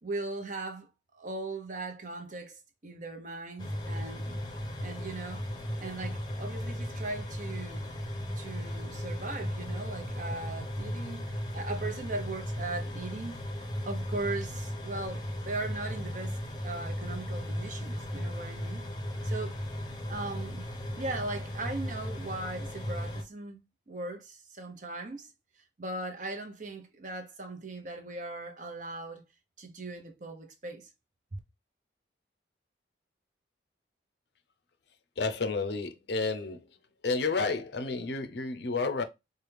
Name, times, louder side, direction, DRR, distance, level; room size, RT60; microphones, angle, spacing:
voice 1, 0.0-4.4 4.8-5.5 5.8-7.9 8.4-11.3 11.5-13.6 13.9-18.8 19.2-19.6 20.1-20.7 20.9-25.3 25.8-29.2 29.6-30.9 31.3-31.4, right 2 dB, 45° right, 0.8 m, -39 dB
sound 1, 3.6-23.2, equal, 25° left, 0.7 m, -36 dB
voice 2, 35.2-36.6 37.0-39.0, left 3 dB, 60° left, 0.6 m, -31 dB
4.7 x 2.3 x 3.3 m
head